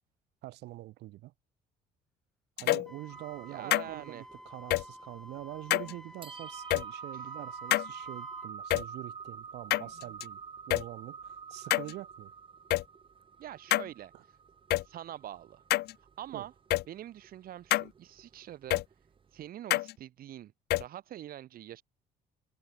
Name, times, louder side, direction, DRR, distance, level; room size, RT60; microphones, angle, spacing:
voice 1, 0.4-1.3 2.6-10.4 10.7-12.3 14.1-14.2 16.3-16.5, right 17 dB, 80° right, 4.0 m, -45 dB
Grandfather Clock - digifish, 2.6-2.9 3.7-3.9 4.7-4.8 5.7-5.9 6.7-6.8 7.7-7.9 8.7-8.8 9.7-10.2 10.7-10.8 11.7-11.9 12.7-12.8 13.7-13.9 14.7-14.8 15.7-15.9 16.7-16.8 17.7-17.9 18.7-18.8 19.7-19.9 20.7-20.8, left 17 dB, 70° left, 0.6 m, -26 dB
Wind instrument woodwind instrument, 2.9-8.5, equal, 5° left, 5.0 m, -51 dB
sound 1, 3.1-19.5, right 6 dB, 30° right, 1.2 m, -47 dB
voice 2, 3.5-4.3 7.1-7.3 13.4-14.4 14.8-15.6 16.2-16.5 16.9-18.8 19.3-20.5 20.8-21.8, right 12 dB, 60° right, 1.8 m, -44 dB
cardioid pair, 110°, 17 cm